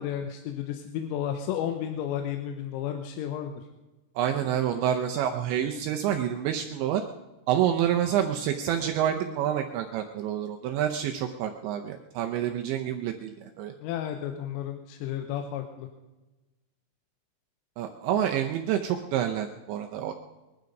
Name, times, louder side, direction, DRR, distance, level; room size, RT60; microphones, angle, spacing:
voice 1, 0.0-3.6 13.8-15.9, left 10 dB, 90° left, 5 dB, 3.7 m, -32 dB
voice 2, 4.2-7.0 7.5-13.7 17.8-20.1, right 10 dB, 80° right, 4 dB, 2.7 m, -28 dB
21.5 x 12.0 x 5.3 m, 1.1 s
omnidirectional pair, 5.9 m